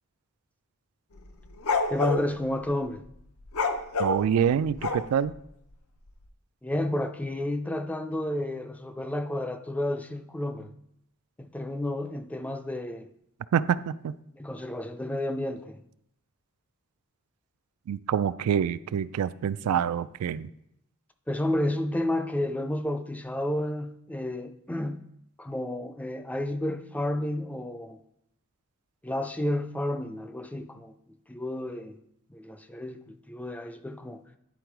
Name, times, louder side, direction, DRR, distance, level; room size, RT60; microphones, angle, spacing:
sound 1, 1.2-2.2 3.5-5.3, left 4 dB, 75° left, 0.6 m, -27 dB
voice 1, 1.9-3.0 6.6-10.7 11.4-13.1 14.3-15.8 21.3-25.0 25.4-28.0 29.0-30.9 31.3-32.0 32.3-34.2, left 1 dB, 5° left, 0.4 m, -31 dB
voice 2, 4.0-5.3 13.5-14.1 17.9-20.5, right 8 dB, 85° right, 0.3 m, -26 dB
9.6 x 3.8 x 4.6 m
head